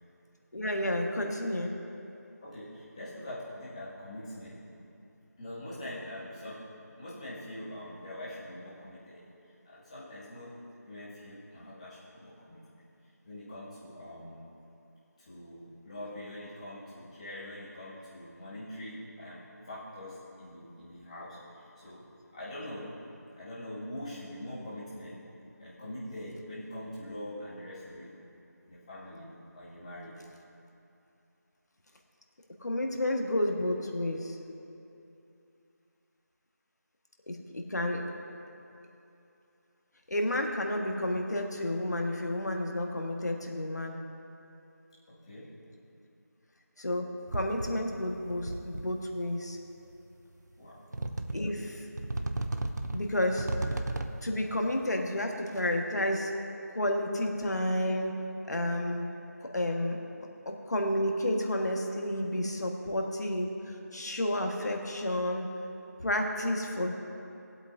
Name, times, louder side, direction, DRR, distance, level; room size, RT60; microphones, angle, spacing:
voice 1, 0.5-1.7 32.6-34.4 37.3-38.0 40.1-44.0 46.8-47.1 47.3-49.6 51.3-51.9 52.9-53.5 54.2-56.3 56.7-58.1 58.5-59.1 59.5-60.0 60.4-65.5 66.0-66.9, left 1 dB, 70° left, 2 dB, 1.5 m, -31 dB
voice 2, 2.4-4.6 5.4-6.6 7.0-9.2 9.6-10.6 10.8-12.6 13.2-14.4 15.2-22.0 22.3-23.0 23.4-25.3 25.6-28.2 28.7-30.2 45.1-45.5 50.6-50.8 51.6-51.7, left 1 dB, 20° left, -10 dB, 2.0 m, -43 dB
sound 1, 47.3-48.0 48.3-49.1 49.9-50.0 50.9-51.6 52.0-54.3, right 2 dB, 75° right, 0.7 m, -35 dB
20.0 x 7.9 x 2.7 m, 2.8 s
figure-of-eight pair, 175°, 9 cm